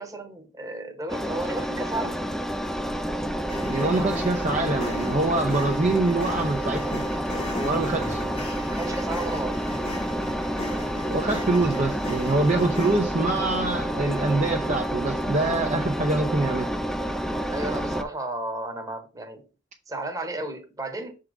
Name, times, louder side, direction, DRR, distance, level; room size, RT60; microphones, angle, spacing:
voice 1, 0.0-2.2 3.8-4.2 7.9-8.1 8.7-9.6 17.5-19.5 19.9-21.2, right 2 dB, 20° right, 1.1 m, -33 dB
Engine, 1.1-18.0, equal, ahead, 0.5 m, -29 dB
sound 1, 3.5-13.0, left 3 dB, 30° left, 1.0 m, -39 dB
voice 2, 3.7-7.0 7.6-8.2 11.0-16.7, right 2 dB, 40° right, 0.6 m, -25 dB
5.8 x 3.8 x 4.8 m
head